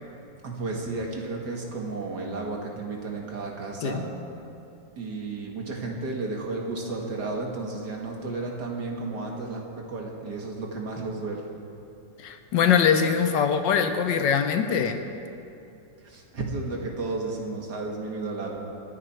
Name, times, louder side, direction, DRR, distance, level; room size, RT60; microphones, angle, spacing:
voice 1, 0.4-4.1 5.0-11.5 16.0-18.6, right 3 dB, 55° right, 0 dB, 2.4 m, -33 dB
voice 2, 12.2-15.0, left 7 dB, 70° left, 8 dB, 1.4 m, -22 dB
27.5 x 9.6 x 4.5 m, 2.7 s
omnidirectional pair, 2.1 m